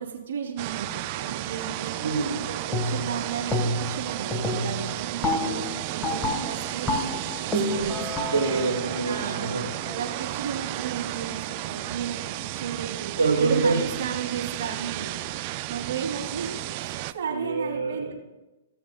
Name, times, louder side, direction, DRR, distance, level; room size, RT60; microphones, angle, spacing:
voice 1, 0.0-1.9 2.5-8.2 9.0-13.1 13.4-15.1 15.7-18.1, right 7 dB, 60° right, -2 dB, 2.9 m, -34 dB
sound 1, 0.6-17.1, right 15 dB, 45° right, 0.4 m, -33 dB
voice 2, 2.0-2.5 8.3-9.9 13.2-13.8 17.3-18.1, right 4 dB, 90° right, -2 dB, 1.4 m, -26 dB
sound 2, 2.7-3.2 3.5-4.0 4.3-10.1, left 1 dB, 15° left, 1.5 m, -29 dB
16.0 x 6.8 x 2.3 m, 1.0 s
hypercardioid pair, 120°, 0 cm